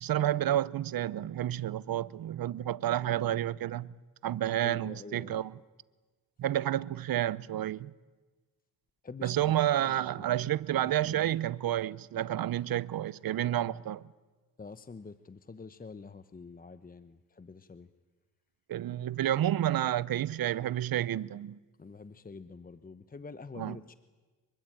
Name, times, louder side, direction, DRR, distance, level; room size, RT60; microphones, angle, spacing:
voice 1, 0.0-3.9 4.2-5.5 6.4-7.9 9.2-14.0 18.7-21.6 23.6-23.8, right 12 dB, 65° right, 0.8 m, -30 dB
voice 2, 4.6-5.4 9.0-11.3 14.6-17.9 21.8-23.9, left 4 dB, 25° left, 0.9 m, -47 dB
25.5 x 23.5 x 9.0 m
cardioid pair, 90°, 38 cm